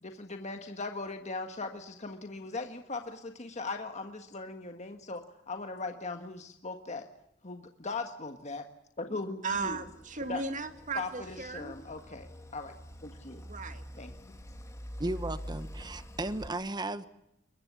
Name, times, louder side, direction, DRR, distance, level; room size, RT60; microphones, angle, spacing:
voice 1, 0.0-7.1 7.4-8.6 9.0-9.8 10.3-10.4 10.9-12.7 13.0-13.4 14.0-14.1, left 3 dB, 35° left, 5 dB, 1.6 m, -39 dB
voice 2, 9.4-11.8 13.5-13.8, right 4 dB, 40° right, 8 dB, 2.0 m, -36 dB
sound 1, 9.5-16.5, equal, 15° left, 2.5 m, -46 dB
voice 3, 15.0-17.1, right 2 dB, 20° right, 12 dB, 1.1 m, -35 dB
22.5 x 21.5 x 8.3 m, 0.83 s
head